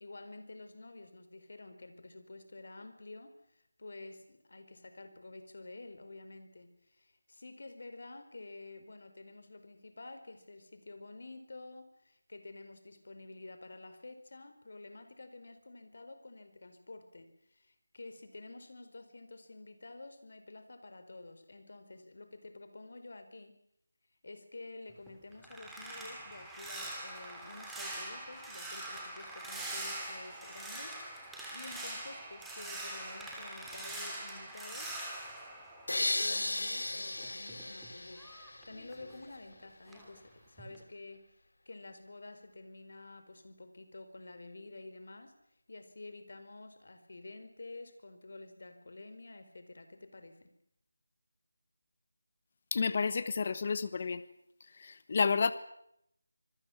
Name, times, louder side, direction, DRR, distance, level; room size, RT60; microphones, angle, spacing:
voice 1, 0.0-23.6 24.2-34.9 36.0-41.3 41.6-45.4 45.7-50.5, left 2 dB, 55° left, 9 dB, 4.9 m, -50 dB
sound 1, 24.9-36.5 36.9-39.5 39.9-40.2 40.6-40.8, right 1 dB, ahead, 3.0 m, -44 dB
sound 2, 35.9-38.9, left 2 dB, 80° left, 1.1 m, -35 dB
voice 2, 52.7-54.2 54.8-55.5, left 5 dB, 35° left, 14 dB, 1.3 m, -30 dB
26.5 x 22.0 x 7.3 m, 0.76 s
figure-of-eight pair, 170°, 0 cm